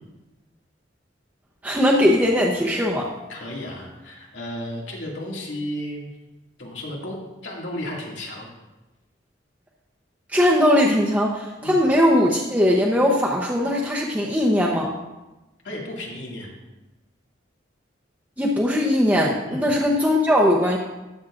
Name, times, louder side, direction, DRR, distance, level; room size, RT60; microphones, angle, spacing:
voice 1, 1.6-3.1 10.3-14.9 18.4-20.8, left 1 dB, 10° right, -3 dB, 0.9 m, -19 dB
voice 2, 3.3-6.2 6.6-7.2 7.4-8.5 11.6-11.8 15.6-16.5 19.4-19.7, left 1 dB, 80° left, -3 dB, 2.4 m, -33 dB
13.5 x 8.5 x 2.6 m, 1.0 s
head